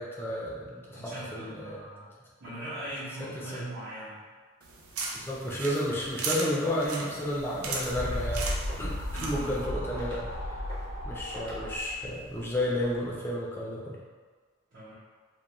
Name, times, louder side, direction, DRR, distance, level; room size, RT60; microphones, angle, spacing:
voice 1, 0.0-1.8 3.2-3.6 5.1-8.5 8.8-8.9 9.2-10.3 11.0-14.0, equal, 10° left, -4 dB, 0.4 m, -32 dB
voice 2, 0.9-2.1 2.4-4.2 9.1-9.5 14.7-14.9, right 1 dB, 55° right, -14 dB, 0.9 m, -40 dB
sound 1, 4.6-9.7, right 3 dB, 90° right, 0.4 m, -37 dB
sound 2, 7.5-13.0, left 1 dB, 70° left, 0.6 m, -35 dB
sound 3, 8.1-8.3 8.6-8.9 9.3-9.7 10.0-10.3 10.7-11.0 11.3-11.6, right 1 dB, 25° right, 0.7 m, -47 dB
2.4 x 2.1 x 2.9 m, 1.5 s
head